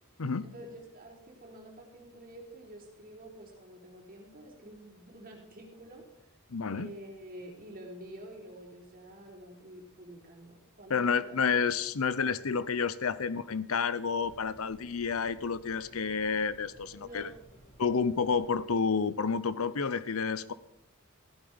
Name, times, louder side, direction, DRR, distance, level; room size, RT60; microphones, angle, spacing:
voice 1, 0.4-6.3 6.7-11.4 12.3-12.4 16.8-17.3, right 1 dB, 40° right, 0 dB, 4.0 m, -48 dB
voice 2, 6.5-6.9 10.9-17.3 17.8-20.5, left 5 dB, 85° left, 16 dB, 0.7 m, -30 dB
sound 1, 14.2-18.6, right 1 dB, 35° left, 7.2 m, -57 dB
15.5 x 12.5 x 5.2 m, 0.78 s
head